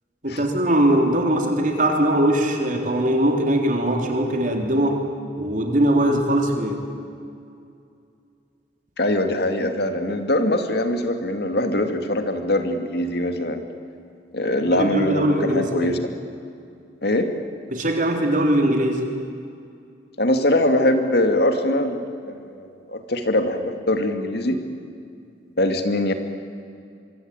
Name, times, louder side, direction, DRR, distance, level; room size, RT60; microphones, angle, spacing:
voice 1, 0.2-5.0 5.4-6.8 14.8-15.9 17.7-19.0, right 1 dB, 45° right, 3 dB, 3.8 m, -21 dB
voice 2, 9.0-13.6 14.3-16.0 17.0-17.3 20.2-22.0 22.3-24.6 25.6-26.1, left 1 dB, 60° left, 6 dB, 2.3 m, -22 dB
25.0 x 24.0 x 9.0 m, 2.4 s
head